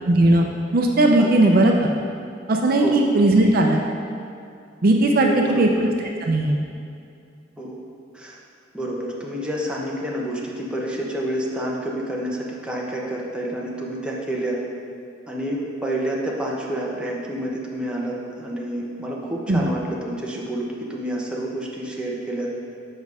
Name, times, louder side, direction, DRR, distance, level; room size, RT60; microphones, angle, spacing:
voice 1, 0.1-0.5 0.7-1.9 2.5-3.8 4.8-5.9 6.2-6.6 19.5-19.6, right 2 dB, 55° right, 1 dB, 0.6 m, -17 dB
voice 2, 1.2-1.5 2.8-3.0 5.2-5.9 7.6-7.8 8.1-8.4 8.7-14.6 15.3-22.5, right 1 dB, 5° right, -4 dB, 1.0 m, -29 dB
7.2 x 5.4 x 4.9 m, 2.5 s
head